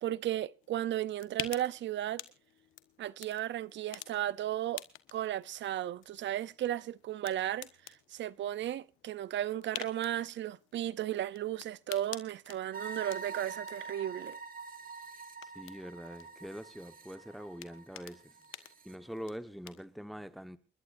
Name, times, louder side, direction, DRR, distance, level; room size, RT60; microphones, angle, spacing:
voice 1, 0.0-2.2 3.0-4.8 5.1-7.7 8.1-14.4, right 12 dB, 65° right, 0.6 m, -35 dB
sound 1, 0.6-20.0, left 13 dB, 85° left, 1.3 m, -50 dB
sound 2, 12.7-19.0, right 4 dB, 45° right, 2.3 m, -46 dB
voice 2, 15.4-20.6, equal, ahead, 1.2 m, -44 dB
29.0 x 11.5 x 2.6 m
cardioid pair, 90°, 20 cm